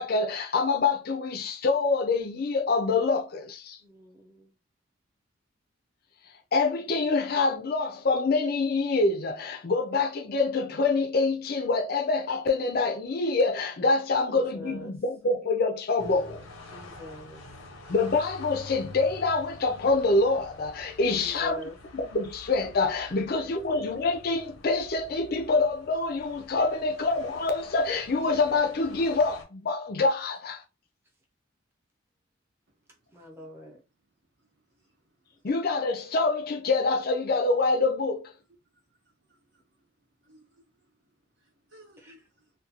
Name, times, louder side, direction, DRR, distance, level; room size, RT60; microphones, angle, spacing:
voice 1, 0.0-3.8 6.5-16.4 17.9-21.6 21.9-30.6 35.4-38.3, left 3 dB, 50° left, 0.4 m, -26 dB
voice 2, 3.8-4.6 14.3-14.9 16.7-17.4 21.1-21.8 23.1-23.2 33.1-33.8 42.0-42.1, left 2 dB, 10° right, 0.7 m, -44 dB
sound 1, 16.0-29.4, left 2 dB, 85° left, 0.7 m, -47 dB
voice 3, 33.3-33.7 34.4-34.5 34.7-34.9 35.3-35.5 38.7-38.8 39.3-39.6 40.2-40.9 41.4-42.5, right 1 dB, 60° right, 0.7 m, -59 dB
2.4 x 2.2 x 2.8 m
head